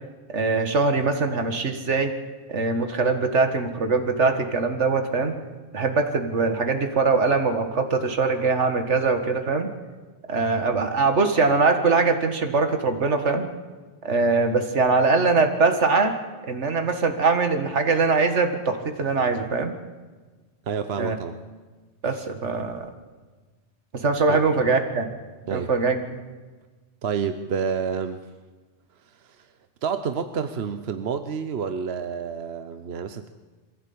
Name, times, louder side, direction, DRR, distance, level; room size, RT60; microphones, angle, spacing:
voice 1, 0.3-2.1 2.5-5.3 5.7-9.7 10.3-13.5 14.0-16.1 16.5-19.7 21.0-21.2 22.0-22.9 23.9-25.1 25.5-26.0, right 4 dB, 80° right, 7 dB, 2.0 m, -22 dB
voice 2, 20.7-21.3 24.3-24.4 25.5-25.7 27.0-28.2 29.4-29.5 29.8-33.3, right 6 dB, 65° right, 9 dB, 1.1 m, -29 dB
22.5 x 15.5 x 8.6 m, 1.3 s
omnidirectional pair, 1.2 m